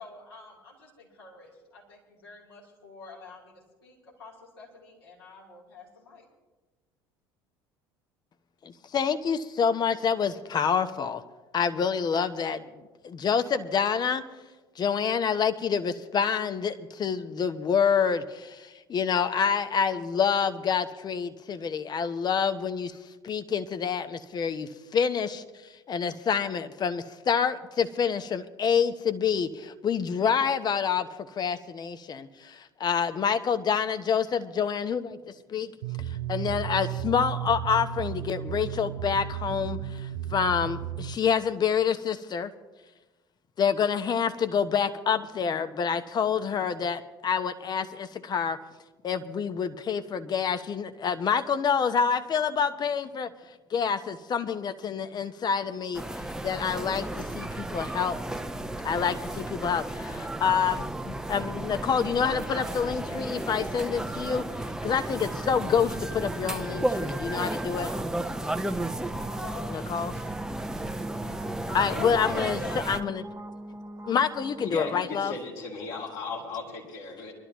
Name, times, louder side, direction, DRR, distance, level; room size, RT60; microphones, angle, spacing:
voice 1, 0.0-6.3 69.1-70.4 71.7-72.9, left 4 dB, 75° left, -4 dB, 3.3 m, -46 dB
voice 2, 8.6-11.2 11.5-14.2 14.8-23.0 23.2-25.4 25.9-31.1 31.4-35.7 36.1-42.5 43.6-48.6 49.0-53.3 53.7-58.2 58.8-64.4 64.8-67.9 69.7-70.1 71.7-72.6 72.9-73.2 74.1-75.3, left 7 dB, 35° left, 11 dB, 0.8 m, -27 dB
sound 1, 35.8-41.2, right 10 dB, 75° right, 0.6 m, -34 dB
sound 2, 55.9-73.0, right 1 dB, 5° right, 0.7 m, -33 dB
sound 3, 66.4-75.0, right 1 dB, 20° right, 1.0 m, -43 dB
voice 3, 74.6-77.3, left 3 dB, 60° left, -2 dB, 3.2 m, -36 dB
24.0 x 12.0 x 3.0 m, 1.2 s
figure-of-eight pair, 60°, 13 cm